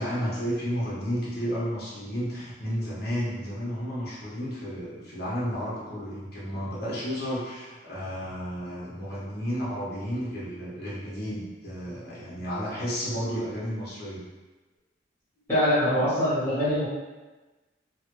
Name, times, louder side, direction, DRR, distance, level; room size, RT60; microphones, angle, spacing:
voice 1, 0.0-14.2, equal, 55° left, -8 dB, 1.1 m, -32 dB
voice 2, 15.5-16.9, equal, 10° left, -13 dB, 1.3 m, -23 dB
3.2 x 2.2 x 3.0 m, 1.2 s
head